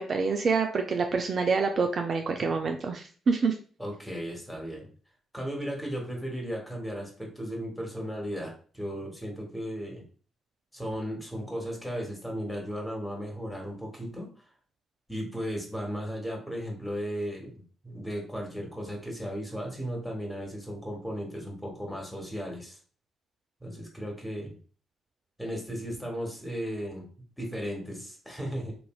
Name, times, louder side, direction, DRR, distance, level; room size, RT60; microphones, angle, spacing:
voice 1, 0.0-3.6, right 4 dB, 50° right, 5 dB, 0.3 m, -27 dB
voice 2, 3.8-4.9 5.3-10.0 10.7-14.3 15.1-22.8 23.6-24.6 25.4-27.1 27.4-28.8, equal, 5° left, 0 dB, 1.2 m, -35 dB
3.1 x 2.5 x 2.2 m, 0.41 s
hypercardioid pair, 45°, 0 cm